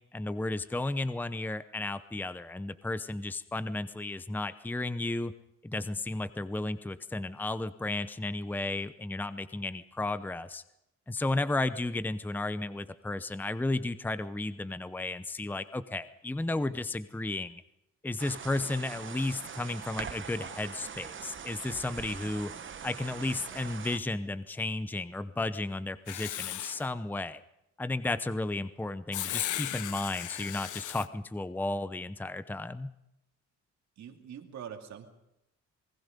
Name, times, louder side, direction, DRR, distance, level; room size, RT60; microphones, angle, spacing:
voice 1, 0.0-5.3 5.6-10.6 11.1-17.6 18.0-22.5 22.8-27.4 27.8-32.9, left 2 dB, 5° left, 13 dB, 0.8 m, -33 dB
sound 1, 18.2-24.0, right 7 dB, 40° right, 1.1 m, -42 dB
Writing, 26.1-26.8 29.1-31.1, left 13 dB, 80° left, 0.9 m, -36 dB
voice 2, 34.0-35.1, right 8 dB, 65° right, 4 dB, 2.7 m, -44 dB
27.5 x 19.5 x 5.3 m, 0.85 s
cardioid pair, 90°, 30 cm